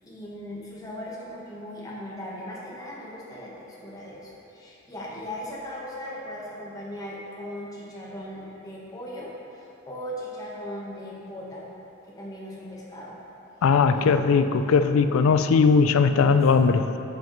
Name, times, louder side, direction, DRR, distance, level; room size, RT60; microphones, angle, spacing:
voice 1, 0.0-3.5 3.8-11.6 12.2-13.1 13.6-14.4 16.0-16.8, left 1 dB, 15° left, -6 dB, 1.2 m, -38 dB
voice 2, 13.6-16.8, left 5 dB, 75° left, 10 dB, 0.3 m, -19 dB
7.5 x 7.2 x 3.1 m, 2.8 s
head